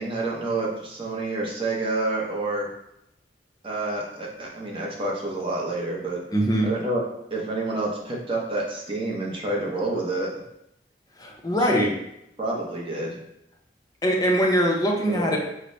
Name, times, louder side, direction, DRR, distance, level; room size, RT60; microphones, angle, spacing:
voice 1, 0.0-2.7 3.6-6.2 6.6-7.0 7.3-10.3 11.7-11.9 12.4-13.2 15.0-15.4, right 2 dB, 30° right, -3 dB, 0.7 m, -28 dB
voice 2, 6.3-6.7 11.2-11.9 14.0-15.4, equal, 20° left, -1 dB, 0.6 m, -22 dB
4.0 x 2.1 x 3.1 m, 0.80 s
head